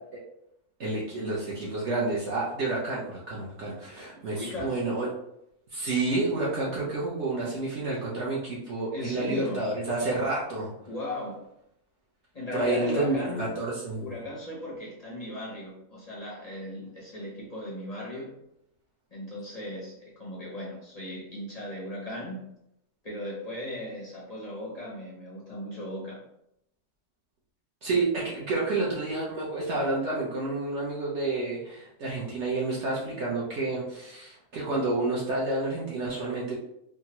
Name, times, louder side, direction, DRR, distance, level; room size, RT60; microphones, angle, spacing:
voice 1, 0.8-5.1 5.7-10.7 12.5-14.1 27.8-36.6, right 2 dB, 60° right, -5 dB, 0.8 m, -29 dB
voice 2, 4.3-4.8 8.9-9.7 10.9-11.4 12.3-13.6 14.0-18.3 19.1-22.4 23.0-26.2, left 1 dB, 50° left, -5 dB, 0.5 m, -36 dB
3.5 x 2.1 x 2.8 m, 0.79 s
omnidirectional pair, 1.7 m